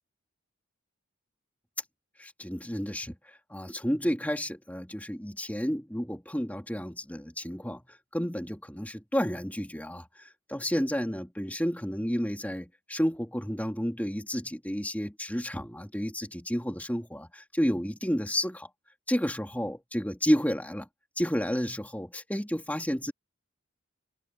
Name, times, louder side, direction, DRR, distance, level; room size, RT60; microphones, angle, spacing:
voice 1, 2.2-7.8 8.1-18.7 19.1-20.9 21.2-23.1, equal, 5° left, 3.1 m, -31 dB
head